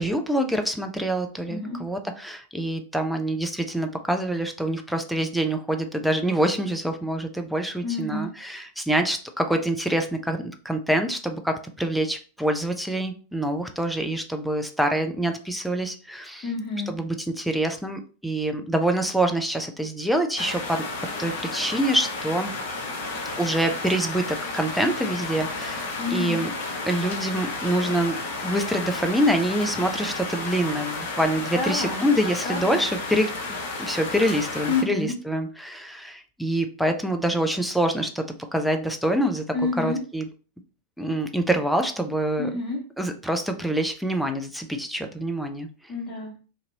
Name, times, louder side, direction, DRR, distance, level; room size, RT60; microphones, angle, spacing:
voice 1, 0.0-16.4 16.9-20.8 21.2-22.5 23.4-26.5 26.9-28.2 28.4-33.3 33.8-38.2 38.5-39.4 39.8-40.3 41.0-42.5 43.0-45.7, right 1 dB, ahead, 5 dB, 0.4 m, -26 dB
voice 2, 1.5-1.8 7.8-8.3 16.4-16.9 26.0-26.4 31.5-32.8 34.7-35.2 39.5-40.0 42.4-42.8 45.9-46.3, left 4 dB, 35° left, -3 dB, 1.0 m, -29 dB
sound 1, 20.4-34.8, left 3 dB, 50° left, 0.6 m, -32 dB
2.7 x 2.5 x 2.8 m, 0.37 s
figure-of-eight pair, 90°, 0 cm